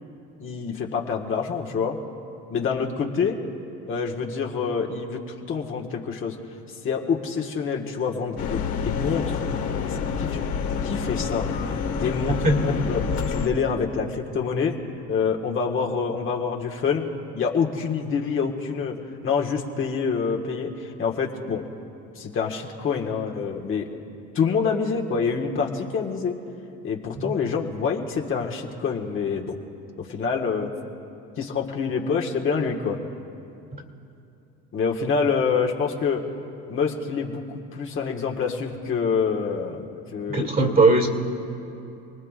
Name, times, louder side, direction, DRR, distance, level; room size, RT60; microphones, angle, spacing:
voice 1, 0.4-2.0 2.5-3.4 3.9-5.2 5.5-6.3 6.8-9.4 9.8-10.5 10.8-11.5 11.9-13.0 13.3-14.8 15.1-17.1 17.3-18.9 19.2-21.6 22.1-24.0 24.3-26.3 26.8-29.6 30.0-30.7 31.4-33.0 34.7-36.2 36.7-37.4 37.7-39.8 40.1-40.9, left 5 dB, 40° left, 0 dB, 1.7 m, -26 dB
sound 1, 8.4-13.5, left 6 dB, 55° left, 1.8 m, -27 dB
voice 2, 40.3-41.1, right 3 dB, 30° right, 3 dB, 2.4 m, -19 dB
29.0 x 19.0 x 2.5 m, 2.7 s
supercardioid pair, 95°, 31 cm